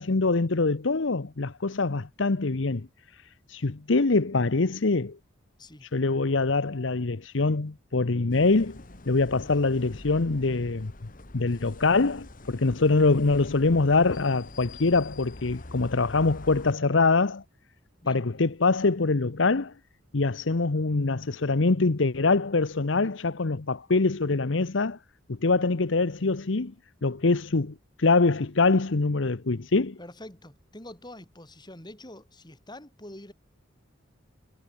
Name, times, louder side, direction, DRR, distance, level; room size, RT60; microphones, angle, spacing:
voice 1, 0.0-2.9 3.5-5.2 5.9-8.8 9.1-10.9 11.3-17.4 18.1-19.7 20.1-25.0 25.3-26.7 27.0-30.0, left 3 dB, 75° left, 0.9 m, -24 dB
sound 1, 8.3-16.7, left 2 dB, 45° left, 1.7 m, -45 dB
voice 2, 30.0-33.3, left 1 dB, 20° left, 5.6 m, -45 dB
head